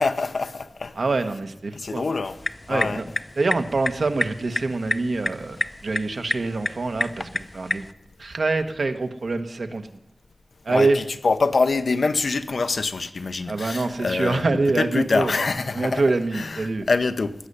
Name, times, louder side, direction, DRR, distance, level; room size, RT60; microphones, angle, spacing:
voice 1, 0.0-0.9 1.7-2.4 2.7-3.0 10.7-16.0 16.3-17.3, left 4 dB, 85° left, 0.8 m, -25 dB
voice 2, 1.0-2.0 2.7-3.0 3.4-5.6 5.8-7.8 8.2-9.9 10.6-11.0 13.5-15.3 15.7-16.9, right 3 dB, 75° right, 1.2 m, -25 dB
sound 1, 2.2-7.9, left 2 dB, 35° left, 0.6 m, -30 dB
15.0 x 6.7 x 9.9 m
wide cardioid pair, 90°, 0 cm